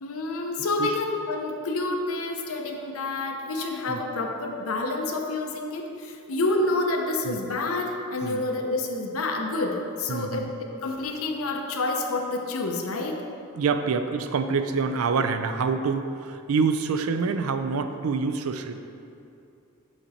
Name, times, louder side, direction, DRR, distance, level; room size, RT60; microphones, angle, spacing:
voice 1, 0.0-13.2, left 2 dB, 80° left, 3 dB, 0.7 m, -28 dB
voice 2, 10.1-10.5 13.6-18.7, right 5 dB, 80° right, 8 dB, 0.4 m, -26 dB
7.2 x 5.3 x 4.1 m, 2.6 s
head